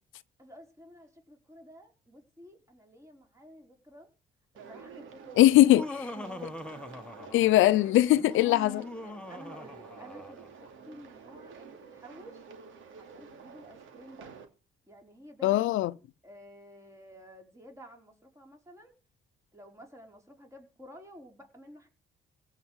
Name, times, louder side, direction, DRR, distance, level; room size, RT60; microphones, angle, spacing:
voice 1, 0.4-4.1 4.7-5.9 6.1-6.5 8.4-8.7 9.0-12.5 12.9-14.3 14.9-18.9 19.5-21.9, equal, 15° right, 4.8 m, -51 dB
sound 1, 4.6-14.5, right 5 dB, 80° right, 2.7 m, -49 dB
voice 2, 5.4-5.8 7.3-8.8 15.4-15.9, left 15 dB, 85° left, 0.6 m, -20 dB
Laughter, 5.5-7.7 8.1-10.5, left 2 dB, 5° left, 1.6 m, -42 dB
16.5 x 5.9 x 8.0 m
cardioid pair, 90°, 20 cm